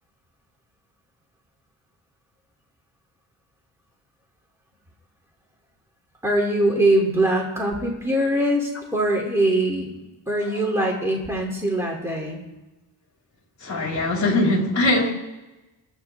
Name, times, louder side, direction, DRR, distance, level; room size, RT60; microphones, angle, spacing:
voice 1, 6.2-9.9 10.3-12.4, right 1 dB, 5° right, 3.0 m, -22 dB
voice 2, 13.6-15.1, left 1 dB, 40° left, 4.3 m, -21 dB
28.0 x 12.5 x 3.6 m
wide cardioid pair, 140°, 43 cm